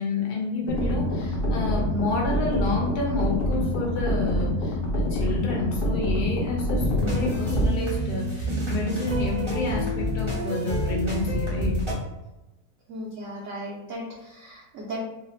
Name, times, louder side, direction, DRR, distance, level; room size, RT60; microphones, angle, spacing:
voice 1, 0.0-11.7, left 2 dB, 80° left, -1 dB, 1.3 m, -29 dB
sound 1, 0.7-7.7, left 1 dB, 65° left, 0.5 m, -26 dB
sound 2, 6.7-11.9, equal, 25° right, 0.6 m, -27 dB
voice 2, 12.9-15.0, right 1 dB, 65° right, -3 dB, 0.8 m, -36 dB
3.1 x 2.0 x 3.1 m, 1.0 s
omnidirectional pair, 1.7 m